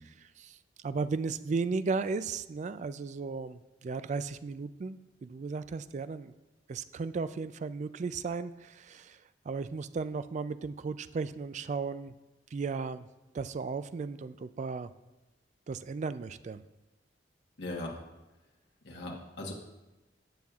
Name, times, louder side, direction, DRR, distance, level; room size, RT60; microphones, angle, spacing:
voice 1, 0.4-6.3 6.7-9.2 9.5-12.1 12.5-13.1 13.3-14.9 15.7-16.6, right 4 dB, 40° right, 13 dB, 0.3 m, -35 dB
voice 2, 17.6-17.9 18.8-19.5, left 2 dB, 70° left, -2 dB, 1.2 m, -38 dB
17.0 x 7.0 x 2.4 m, 1.0 s
head